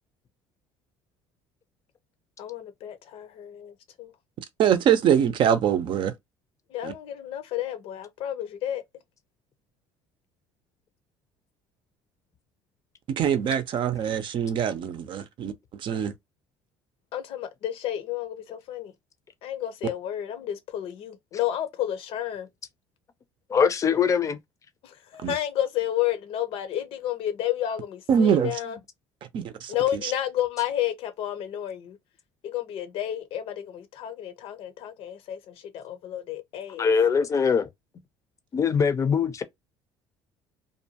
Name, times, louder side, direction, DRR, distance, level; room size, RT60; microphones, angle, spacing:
voice 1, 2.4-4.1 6.7-8.8 17.1-18.9 19.4-22.5 24.8-28.8 29.7-32.0 32.4-36.9, left 11 dB, 65° left, 0.7 m, -31 dB
voice 2, 4.6-6.1 6.8-6.9 13.1-16.1 25.2-25.3 28.1-28.6 29.3-29.8 30.0-30.1, right 8 dB, 55° right, 0.6 m, -24 dB
voice 3, 23.5-24.4 36.7-37.7 38.5-39.4, left 6 dB, 30° left, 0.5 m, -22 dB
2.6 x 2.2 x 2.8 m
cardioid pair, 105°, 10 cm